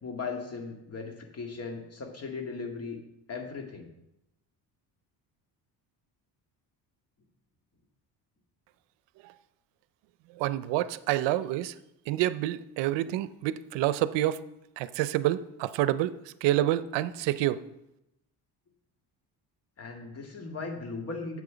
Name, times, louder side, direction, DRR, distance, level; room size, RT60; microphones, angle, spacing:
voice 1, 0.0-3.0 3.3-3.9 19.8-21.4, left 4 dB, 35° left, 4 dB, 1.9 m, -37 dB
voice 2, 10.4-11.7 12.1-14.4 14.8-16.1 16.4-17.6, right 14 dB, 80° right, 15 dB, 0.6 m, -28 dB
9.5 x 7.4 x 5.0 m, 0.88 s
cardioid pair, 115°, 42 cm